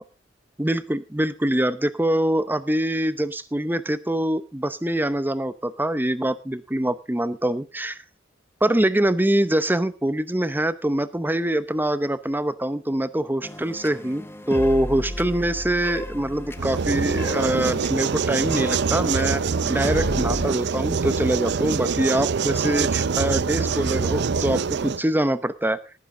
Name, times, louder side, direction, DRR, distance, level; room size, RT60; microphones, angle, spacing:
voice 1, 0.6-8.0 8.6-19.4 19.7-25.8, right 1 dB, 10° right, 14 dB, 0.8 m, -24 dB
sound 1, 13.4-20.5, left 1 dB, 10° left, 1.0 m, -34 dB
sound 2, 16.6-25.0, right 5 dB, 60° right, 0.6 m, -24 dB
17.5 x 9.7 x 3.8 m, 0.30 s
head